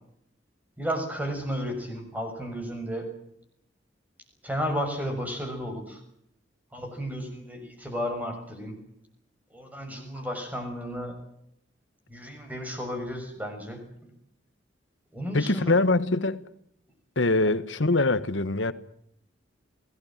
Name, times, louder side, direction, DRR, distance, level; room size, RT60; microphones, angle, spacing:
voice 1, 0.8-3.1 4.4-6.0 6.7-8.8 9.5-11.2 12.1-14.1 15.1-15.7 17.4-17.5, equal, 10° right, 6.4 m, -33 dB
voice 2, 15.3-16.5 17.1-18.7, left 2 dB, 80° left, 1.5 m, -23 dB
29.0 x 18.5 x 7.5 m
head